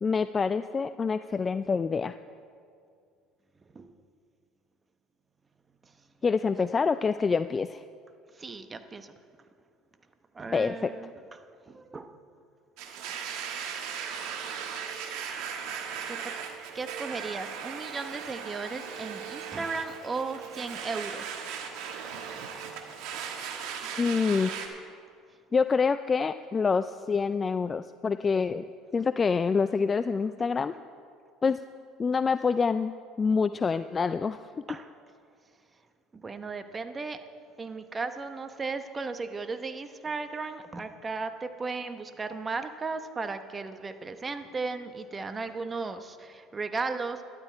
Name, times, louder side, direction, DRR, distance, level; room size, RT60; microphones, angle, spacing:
voice 1, 0.0-2.2 6.2-7.8 10.5-10.9 24.0-24.5 25.5-28.6 28.9-30.7 31.4-31.6 32.0-34.5, left 5 dB, 30° left, 12 dB, 0.3 m, -26 dB
voice 2, 8.3-9.1 10.3-12.1 16.1-16.4 16.7-21.8 34.7-34.9 36.1-37.2 37.6-47.2, right 4 dB, 25° right, 9 dB, 0.9 m, -36 dB
Domestic sounds home sounds, 12.8-24.7, right 7 dB, 70° right, 1.4 m, -38 dB
13.0 x 11.5 x 4.5 m, 2.3 s
supercardioid pair, 85°, 0 cm